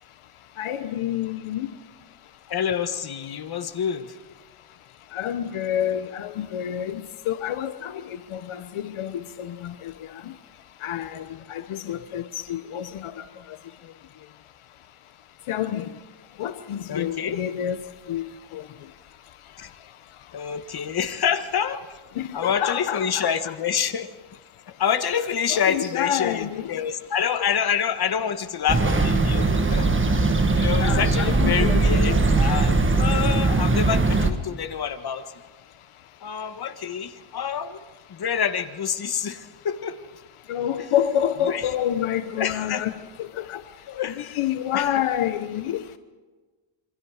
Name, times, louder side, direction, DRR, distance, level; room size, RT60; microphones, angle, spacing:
voice 1, 0.6-1.7 5.1-9.7 10.8-11.2 11.5-12.2 12.5-13.1 15.5-15.9 16.4-17.8 18.1-18.6 22.2-23.5 25.5-26.7 30.8-32.2 40.5-42.9 43.2-43.6 44.2-45.8, left 10 dB, 85° left, 1.1 m, -28 dB
voice 2, 2.5-4.1 16.9-17.4 19.6-19.7 20.3-21.8 22.3-24.1 24.8-29.9 30.5-35.2 36.2-37.8 38.1-40.0 41.5-41.6 42.4-42.8 43.9-44.3 44.7-44.8, left 8 dB, 50° left, 1.5 m, -27 dB
sound 1, 28.7-34.3, right 3 dB, 25° right, 1.7 m, -20 dB
27.0 x 24.0 x 5.0 m
cardioid pair, 130°, 49 cm